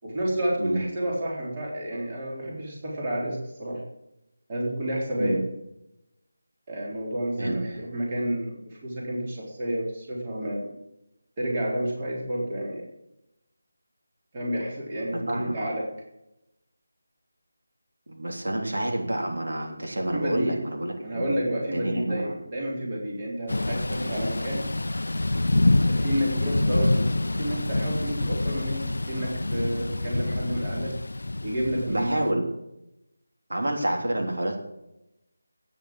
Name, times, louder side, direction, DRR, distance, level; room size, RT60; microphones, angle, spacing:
voice 1, 0.0-3.8 4.5-5.4 6.7-10.7 11.4-12.8 14.3-15.8 20.1-20.6 21.0-24.7 25.9-31.0 31.4-32.4, equal, 25° right, -3 dB, 3.8 m, -30 dB
voice 2, 15.1-15.6 18.1-21.3 21.7-22.3 31.9-32.5 33.5-34.6, right 1 dB, 75° right, 1 dB, 3.5 m, -28 dB
Thunder / Rain, 23.5-32.3, left 2 dB, 80° left, 0.4 m, -26 dB
11.5 x 9.6 x 7.7 m, 0.88 s
figure-of-eight pair, 170°, 0 cm